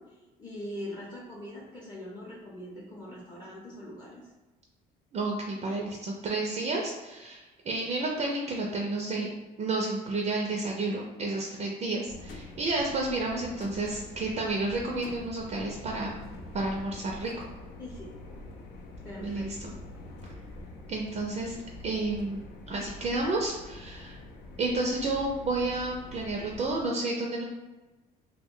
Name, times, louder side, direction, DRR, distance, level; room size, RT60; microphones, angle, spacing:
voice 1, 0.0-4.3 17.8-18.1 19.0-19.7, left 1 dB, 25° left, -5 dB, 0.6 m, -42 dB
voice 2, 5.1-9.3 9.6-16.2 16.5-17.4 19.2-19.6 20.9-21.6 21.8-22.4 22.7-24.2 24.6-27.4, right 2 dB, 40° right, -1 dB, 0.4 m, -31 dB
sound 1, 12.1-26.8, left 2 dB, 75° left, 0.5 m, -45 dB
2.2 x 2.1 x 3.6 m, 1.2 s
cardioid pair, 110°, 17 cm